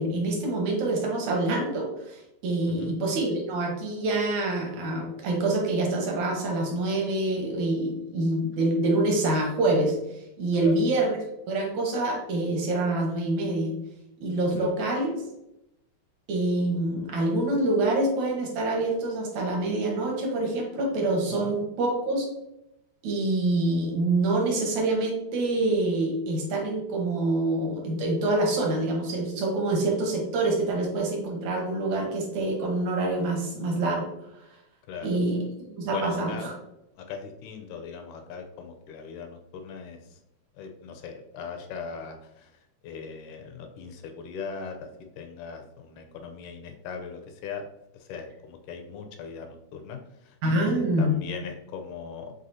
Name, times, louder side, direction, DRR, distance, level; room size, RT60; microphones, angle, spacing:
voice 1, 0.0-10.0 10.4-11.2 11.5-13.7 14.2-15.2 16.3-22.3 23.0-34.1 35.0-35.4 35.8-36.5 50.4-51.2, right 2 dB, 70° right, 0 dB, 2.0 m, -26 dB
voice 2, 35.8-36.5 37.0-40.2 40.5-42.5 42.8-44.9 45.2-47.7 47.9-50.7 51.0-52.3, left 5 dB, 80° left, 5 dB, 2.0 m, -39 dB
5.4 x 3.2 x 2.7 m, 0.85 s
omnidirectional pair, 3.6 m